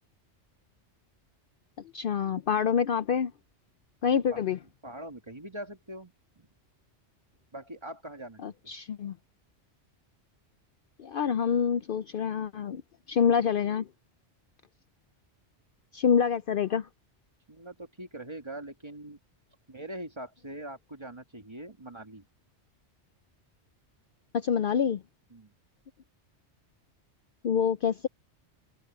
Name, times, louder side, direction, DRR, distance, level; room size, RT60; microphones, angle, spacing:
voice 1, 1.9-3.3 4.0-4.6 8.4-9.2 11.0-12.8 13.1-13.9 15.9-16.9 24.3-25.0 27.4-28.1, left 7 dB, 60° left, 0.7 m, -26 dB
voice 2, 4.8-6.5 7.5-8.5 17.5-19.2 19.7-22.2 25.3-25.5, right 1 dB, 25° right, 1.9 m, -42 dB
omnidirectional pair, 1.2 m